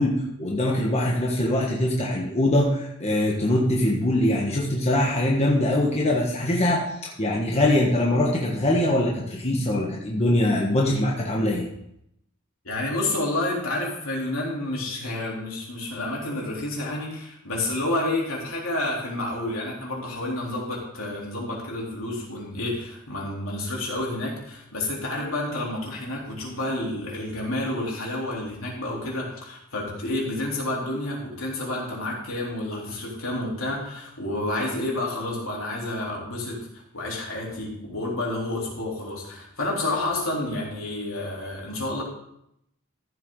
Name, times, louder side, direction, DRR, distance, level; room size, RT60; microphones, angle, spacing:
voice 1, 0.0-11.6, left 1 dB, 30° left, -2 dB, 1.4 m, -23 dB
voice 2, 12.6-42.0, left 2 dB, 75° left, -3 dB, 3.7 m, -29 dB
14.5 x 7.7 x 3.9 m, 0.77 s
head